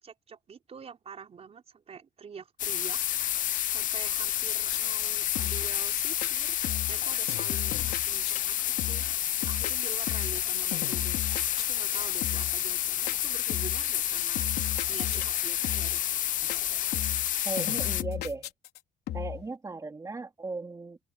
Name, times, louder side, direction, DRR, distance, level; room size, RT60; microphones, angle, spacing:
voice 1, 0.0-3.3 3.6-6.6 6.9-9.1 9.4-14.5 14.9-16.0, right 6 dB, 35° right, 4.4 m, -46 dB
sound 1, 2.6-18.0, left 12 dB, 50° left, 0.5 m, -29 dB
sound 2, 4.7-5.1 5.4-5.7 6.0-6.3 6.6-7.0 7.3-8.4 8.8-9.2 9.4-10.4 10.7-11.9 12.2-12.6 13.1-13.9 14.4-15.4 15.6-16.0 16.3-16.6 16.9-17.3 17.6-18.8 19.1-19.4, left 13 dB, 75° left, 3.6 m, -35 dB
voice 2, 17.4-18.5 19.1-21.0, right 3 dB, 20° right, 3.1 m, -37 dB
open air
cardioid pair, 110°, 17 cm